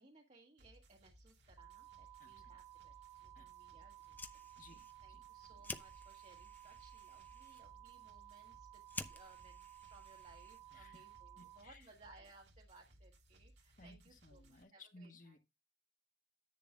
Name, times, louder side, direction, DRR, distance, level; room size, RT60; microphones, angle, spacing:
voice 1, 0.0-2.9 3.2-4.1 4.5-4.7 5.0-15.4, right 2 dB, 40° right, 1.4 m, -64 dB
sound 1, 0.6-14.6, right 1 dB, 75° right, 1.8 m, -65 dB
sound 2, 1.6-11.6, right 16 dB, 25° right, 0.8 m, -57 dB
voice 2, 2.2-2.5 3.3-3.5 4.6-5.2 10.7-11.0 11.4-11.8 13.8-15.4, left 2 dB, 45° left, 1.5 m, -60 dB
Fire, 3.9-10.9, left 3 dB, 10° left, 0.6 m, -53 dB
10.5 x 8.6 x 2.3 m
head